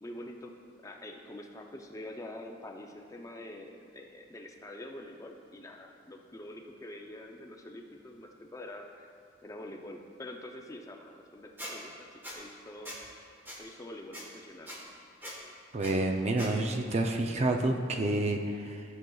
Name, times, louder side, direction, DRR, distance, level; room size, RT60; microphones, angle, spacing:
voice 1, 0.0-9.1 9.4-12.9 13.6-14.7, left 1 dB, 15° left, 2 dB, 0.5 m, -46 dB
Squeak, 11.6-11.7 12.2-12.4 12.8-13.0 13.5-13.6 14.1-14.2 14.7-14.8 15.2-15.4 15.8-15.9 16.4-16.5, equal, 10° right, 1.2 m, -41 dB
voice 2, 15.7-18.8, right 2 dB, 35° right, 4 dB, 0.5 m, -29 dB
13.0 x 6.4 x 2.3 m, 2.2 s
head